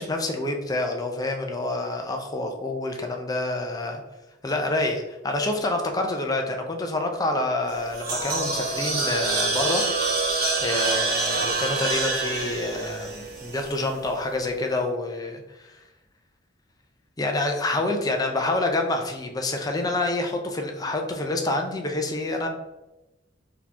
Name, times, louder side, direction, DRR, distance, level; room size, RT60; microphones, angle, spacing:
voice 1, 0.0-4.0 4.4-9.8 10.1-10.2 10.6-15.8 17.2-22.5, left 2 dB, 20° left, 3 dB, 0.5 m, -27 dB
sound 1, 7.7-14.0, right 3 dB, 50° right, 1.1 m, -26 dB
4.0 x 2.9 x 3.6 m, 0.99 s
head